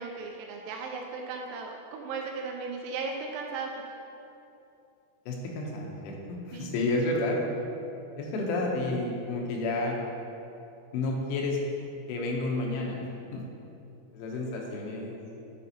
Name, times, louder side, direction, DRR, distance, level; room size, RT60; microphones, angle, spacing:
voice 1, 0.0-3.7 6.5-6.7, right 4 dB, 85° right, 1 dB, 3.2 m, -36 dB
voice 2, 5.3-7.4 8.2-10.0 10.9-11.6 12.1-13.4 14.1-15.2, left 2 dB, 80° left, -1 dB, 3.3 m, -30 dB
9.3 x 6.9 x 2.9 m, 2.8 s
omnidirectional pair, 5.9 m